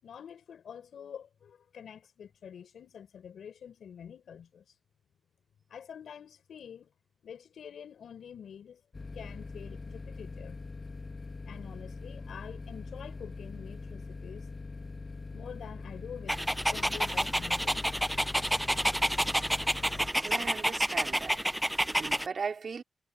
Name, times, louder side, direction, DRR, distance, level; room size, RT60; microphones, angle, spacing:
voice 1, 0.0-4.6 5.7-6.9 7.2-8.8 9.1-10.6 11.5-14.5 15.3-16.4 16.7-17.9, left 8 dB, 80° left, 5.4 m, -47 dB
sound 1, 8.9-20.1, left 3 dB, 40° left, 1.6 m, -42 dB
Dog, 16.3-22.3, equal, 5° right, 0.4 m, -29 dB
voice 2, 19.9-21.5 21.9-22.8, right 5 dB, 60° right, 4.2 m, -38 dB
cardioid pair, 75°, 0 cm